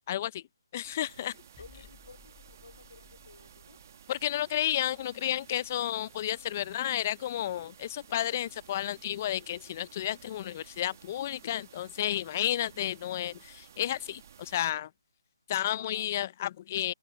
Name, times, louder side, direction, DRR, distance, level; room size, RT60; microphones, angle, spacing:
voice 1, 0.1-0.4 0.7-1.4 4.1-14.9 15.5-16.9, left 12 dB, 30° left, 0.6 m, -32 dB
sound 1, 0.8-14.7, right 8 dB, 40° right, 1.4 m, -55 dB
voice 2, 1.6-3.8 15.8-16.1, left 4 dB, 70° left, 3.7 m, -54 dB
sound 2, 1.6-7.3 7.5-7.8, left 7 dB, 10° left, 2.7 m, -61 dB
open air
figure-of-eight pair, 150°, 2 cm